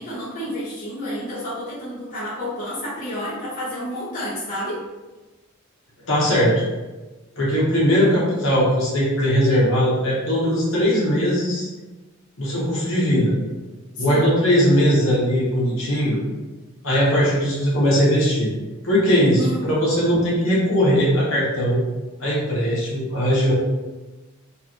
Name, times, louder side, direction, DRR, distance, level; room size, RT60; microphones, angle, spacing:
voice 1, 0.0-4.8 14.1-14.3 19.3-19.7, equal, 40° left, -9 dB, 0.9 m, -30 dB
voice 2, 6.1-6.6 7.3-11.7 12.4-13.3 14.0-16.2 16.8-18.5 18.8-21.8 22.2-23.5, equal, 70° left, -6 dB, 1.4 m, -19 dB
3.9 x 2.6 x 3.0 m, 1.2 s
head